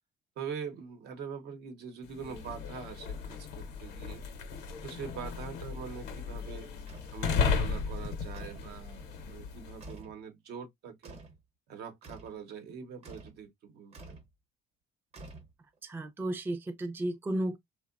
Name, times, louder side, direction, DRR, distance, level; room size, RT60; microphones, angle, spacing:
voice 1, 0.4-4.2 4.8-6.7 7.1-11.2 11.7-14.2, right 6 dB, 70° right, 0.8 m, -43 dB
sound 1, 2.1-9.9, left 5 dB, 85° left, 0.7 m, -35 dB
sound 2, 6.9-7.2 8.3-8.7 9.8-10.2 11.0-11.4 12.0-12.4 13.0-13.4 13.9-14.3 15.1-15.8, right 2 dB, 40° right, 0.8 m, -48 dB
voice 2, 15.8-17.6, right 1 dB, 10° right, 0.4 m, -33 dB
2.8 x 2.0 x 2.3 m
cardioid pair, 110°, 17 cm